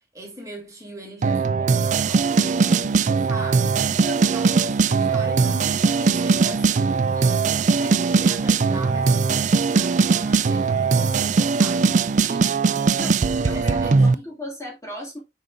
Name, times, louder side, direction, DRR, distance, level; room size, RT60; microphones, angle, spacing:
voice 1, 0.1-3.8 4.2-12.0 12.8-14.3, right 1 dB, 20° right, 2.4 m, -40 dB
sound 1, 1.2-14.2, right 4 dB, 45° right, 0.4 m, -20 dB
voice 2, 4.0-4.5 12.2-12.5 13.0-15.2, equal, 20° left, 2.2 m, -36 dB
8.0 x 5.1 x 2.5 m
head